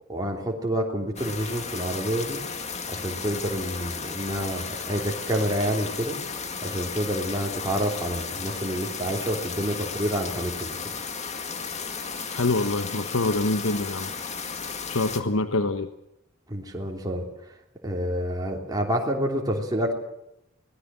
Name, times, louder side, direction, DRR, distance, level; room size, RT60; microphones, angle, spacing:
voice 1, 0.1-2.4 2.9-6.2 6.6-10.8 16.5-17.6 17.8-20.0, equal, 20° right, -1 dB, 3.1 m, -28 dB
sound 1, 1.2-15.2, left 5 dB, 35° left, 2.0 m, -34 dB
voice 2, 12.3-14.1 14.9-15.9, left 2 dB, 85° left, 8 dB, 1.1 m, -25 dB
24.0 x 18.5 x 7.5 m, 0.84 s
head